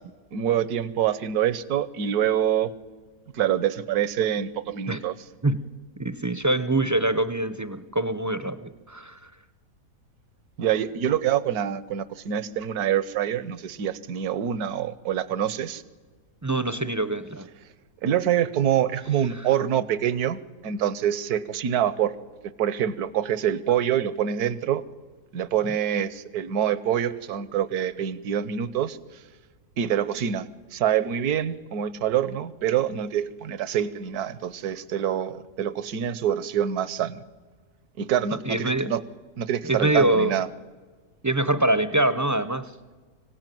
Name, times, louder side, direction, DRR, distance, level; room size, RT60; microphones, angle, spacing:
voice 1, 0.3-2.7 3.3-5.2 10.6-15.8 18.0-22.1 22.6-24.8 25.3-29.0 29.8-37.2 38.0-39.0 39.4-40.5, right 10 dB, 85° right, 17 dB, 1.4 m, -26 dB
voice 2, 6.0-9.3 16.4-17.5 38.3-38.9 39.6-40.3 41.2-42.7, right 2 dB, 30° right, 13 dB, 0.3 m, -24 dB
25.0 x 16.5 x 9.2 m, 1.4 s
omnidirectional pair, 1.6 m